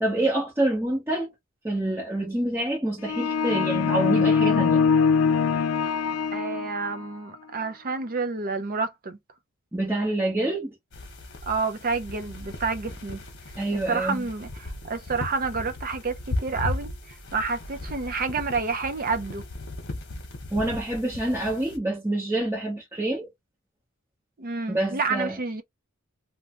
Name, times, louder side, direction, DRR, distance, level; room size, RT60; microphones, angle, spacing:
voice 1, 0.0-1.3 1.6-4.8 9.7-10.7 13.6-14.3 20.5-23.3 24.7-25.4, right 1 dB, 10° right, 0.8 m, -27 dB
sound 1, 3.0-7.0, left 6 dB, 85° left, 0.3 m, -23 dB
voice 2, 6.3-9.2 11.5-13.2 13.9-19.4 24.4-25.6, right 4 dB, 45° right, 0.6 m, -29 dB
sound 2, 10.9-21.8, left 2 dB, 55° left, 1.0 m, -37 dB
3.0 x 2.2 x 2.9 m
head